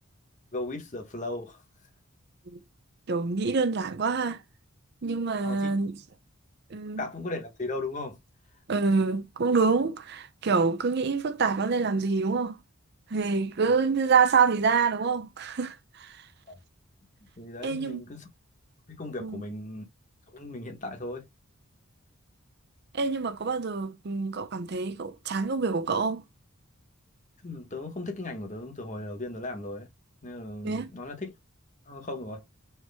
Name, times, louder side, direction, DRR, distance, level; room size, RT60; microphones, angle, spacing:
voice 1, 0.5-1.6 5.4-5.8 7.0-8.2 17.4-18.3 18.9-19.8 20.3-21.3 27.4-29.9 30.2-31.3 31.9-32.4, left 2 dB, 35° left, 1.1 m, -37 dB
voice 2, 3.1-4.4 5.0-6.0 6.7-7.0 8.7-12.6 13.1-16.2 17.6-18.0 19.2-19.4 22.9-26.2 30.6-30.9, right 4 dB, 50° right, 0.5 m, -26 dB
4.5 x 2.8 x 3.4 m
head